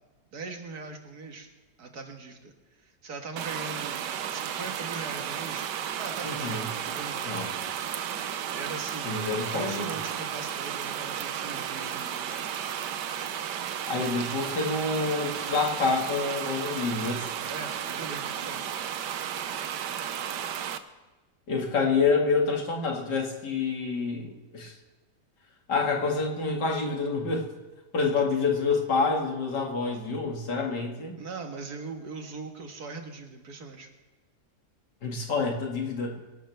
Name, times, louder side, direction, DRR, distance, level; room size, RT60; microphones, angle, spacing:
voice 1, 0.3-1.5 1.8-2.5 2.8-4.0 4.3-5.7 6.0-7.2 8.5-12.5 17.4-18.6 31.2-33.9, right 4 dB, 65° right, 4 dB, 2.1 m, -40 dB
sound 1, 3.4-20.8, right 9 dB, 85° right, 1.4 m, -33 dB
voice 2, 6.2-6.7 7.3-7.5 9.0-9.8 13.9-17.3 21.5-24.7 25.7-27.4 27.9-31.1 35.0-36.2, left 4 dB, 85° left, 0 dB, 2.7 m, -27 dB
23.5 x 12.5 x 3.5 m, 1.2 s
omnidirectional pair, 1.8 m